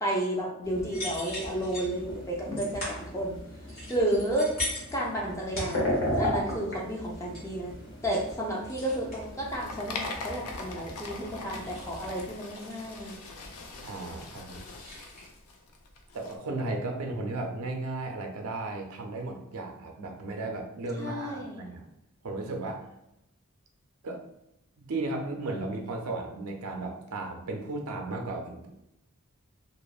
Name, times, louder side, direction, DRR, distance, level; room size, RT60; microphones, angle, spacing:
voice 1, 0.0-3.4 3.9-4.5 4.9-7.7 8.0-13.1 21.0-21.7, right 1 dB, 15° left, -2 dB, 0.4 m, -32 dB
sound 1, 0.6-12.3, left 1 dB, 60° left, 0.8 m, -36 dB
sound 2, 0.9-1.9 2.6-3.1 3.7-5.1 5.5-6.2 6.5-6.7 7.0-7.4 7.8-8.3 8.7-9.2 10.1-11.2 11.5-13.9 14.2-15.3, left 1 dB, 40° left, 1.2 m, -40 dB
sound 3, 9.2-16.3, left 3 dB, 85° left, 0.4 m, -42 dB
voice 2, 13.8-14.6 16.1-21.9 22.2-22.9 24.0-24.2 24.8-28.7, right 2 dB, 85° right, 3 dB, 0.5 m, -35 dB
2.8 x 2.0 x 2.3 m, 0.85 s
head